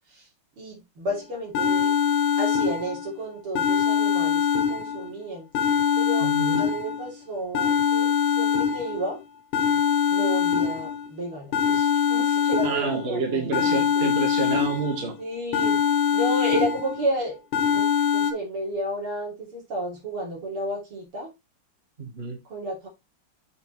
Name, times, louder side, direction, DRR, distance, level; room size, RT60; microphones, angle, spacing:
voice 1, 0.6-1.9 2.4-5.5 6.0-6.3 6.6-9.2 10.1-14.1 14.5-14.6 15.2-17.4 17.7-17.9 18.1-21.3 22.4-22.9, right 1 dB, 85° right, 4.2 m, -32 dB
sound 1, 1.1-1.2 1.5-3.1 3.5-5.1 5.5-7.1 7.5-9.1 9.5-11.1 11.5-13.1 13.5-15.1 15.5-17.1 17.5-18.3, left 7 dB, 90° left, 1.8 m, -23 dB
voice 2, 6.2-6.7 12.6-15.2 22.0-22.4, right 4 dB, 30° right, 1.7 m, -29 dB
7.1 x 5.8 x 3.2 m
omnidirectional pair, 2.3 m